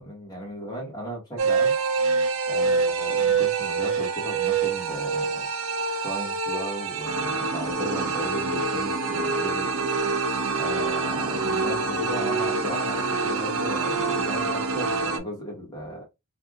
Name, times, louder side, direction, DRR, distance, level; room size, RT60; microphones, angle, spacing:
voice 1, 0.0-1.7 2.5-5.5 6.0-9.8 10.5-16.0, right 1 dB, 15° left, 1.6 m, -36 dB
sound 1, 1.4-15.2, right 4 dB, 65° right, 0.6 m, -26 dB
3.3 x 2.6 x 2.5 m
head